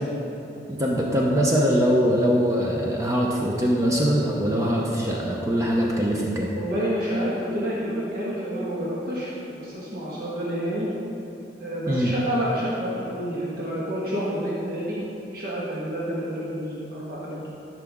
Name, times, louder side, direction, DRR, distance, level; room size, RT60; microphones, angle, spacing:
voice 1, 0.7-6.5 11.9-12.1, equal, 20° right, -2 dB, 0.7 m, -22 dB
voice 2, 6.5-10.9 11.6-15.0 15.3-17.5, equal, 55° right, -7 dB, 1.5 m, -29 dB
12.5 x 5.9 x 3.6 m, 2.9 s
head